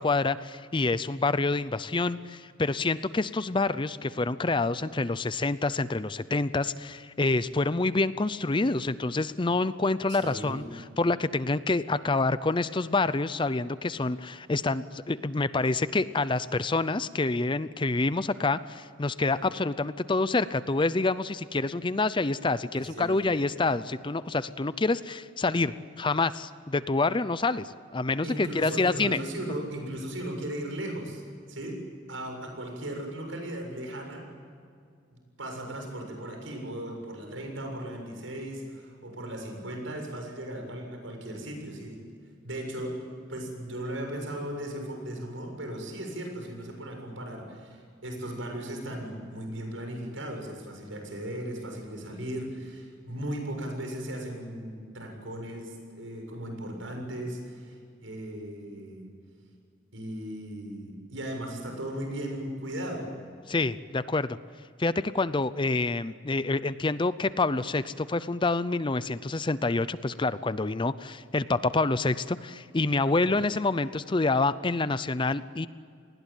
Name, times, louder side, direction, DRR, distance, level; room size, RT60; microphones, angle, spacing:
voice 1, 0.0-29.2 63.5-64.4 64.8-75.7, left 3 dB, 25° left, 15 dB, 0.6 m, -27 dB
voice 2, 10.1-10.7 22.7-23.3 28.2-31.2 31.5-31.8 32.1-34.3 35.1-42.0 42.4-59.0 59.9-63.1 73.2-73.4, right 1 dB, 80° right, 3 dB, 7.2 m, -37 dB
29.0 x 20.0 x 9.1 m, 2.3 s
head